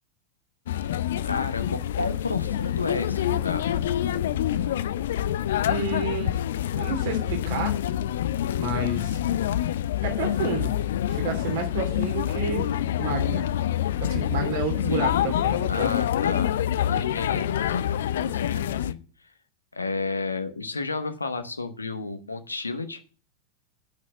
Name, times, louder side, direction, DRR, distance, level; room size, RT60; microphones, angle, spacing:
sound 1, 0.7-18.9, left 11 dB, 60° left, 0.4 m, -26 dB
voice 1, 1.2-3.8 14.9-15.2 15.7-16.6 16.9-19.3 19.7-23.0, left 3 dB, 80° left, 8 dB, 1.1 m, -32 dB
voice 2, 5.6-6.4 6.8-7.8 8.5-9.2 10.0-10.7 11.1-12.7 13.0-13.4 14.0-15.9, right 4 dB, 50° right, 4 dB, 2.7 m, -30 dB
8.6 x 6.4 x 7.2 m, 0.39 s
figure-of-eight pair, 90°, 0 cm